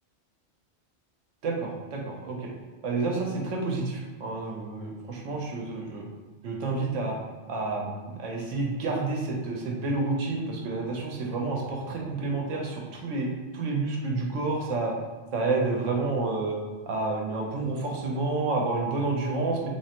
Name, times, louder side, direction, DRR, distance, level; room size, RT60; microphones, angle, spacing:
voice 1, 1.4-2.5 2.8-6.1 6.4-7.2 7.5-13.3 13.5-14.9 15.3-16.6 16.9-19.7, right 3 dB, 85° right, -1 dB, 1.1 m, -29 dB
3.4 x 3.2 x 2.9 m, 1.3 s
omnidirectional pair, 1.3 m